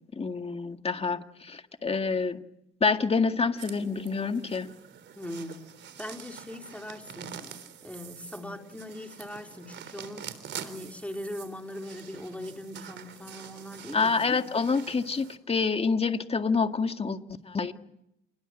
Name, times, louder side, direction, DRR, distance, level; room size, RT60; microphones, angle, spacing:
voice 1, 0.1-2.4 2.8-4.7 13.9-17.2 17.4-17.7, left 4 dB, 30° left, 2.0 m, -27 dB
sound 1, 3.6-15.4, right 8 dB, 65° right, 3.6 m, -46 dB
voice 2, 5.1-5.7 6.0-7.5 7.8-10.3 10.6-14.5, left 1 dB, 5° left, 3.9 m, -40 dB
28.5 x 21.5 x 8.8 m
cardioid pair, 90°, 20 cm